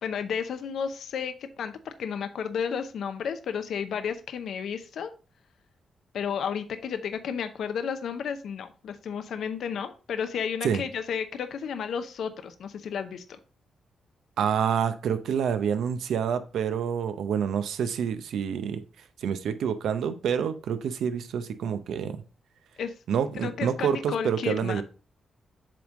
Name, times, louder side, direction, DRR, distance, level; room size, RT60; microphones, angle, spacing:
voice 1, 0.0-5.1 6.1-13.4 22.8-22.9 23.3-24.8, left 7 dB, 75° left, 0.6 m, -32 dB
voice 2, 14.4-18.8 19.2-22.2 23.1-24.8, right 7 dB, 85° right, 0.7 m, -27 dB
7.6 x 3.6 x 3.7 m
cardioid pair, 100°, 0 cm